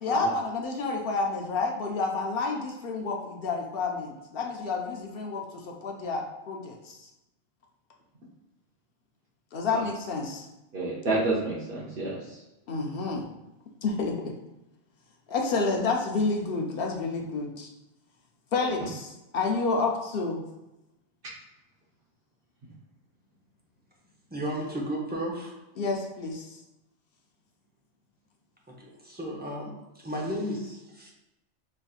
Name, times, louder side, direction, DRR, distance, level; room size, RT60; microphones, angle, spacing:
voice 1, 0.0-6.8 9.5-10.5 12.7-13.2 13.8-14.3 15.3-17.7 18.5-20.4 25.8-26.5, left 3 dB, 60° left, 1 dB, 0.7 m, -29 dB
voice 2, 10.7-12.4, right 2 dB, 55° right, -8 dB, 0.9 m, -29 dB
voice 3, 24.3-25.5 28.7-31.1, equal, 10° right, -3 dB, 0.5 m, -34 dB
4.0 x 3.3 x 2.3 m, 0.95 s
omnidirectional pair, 1.2 m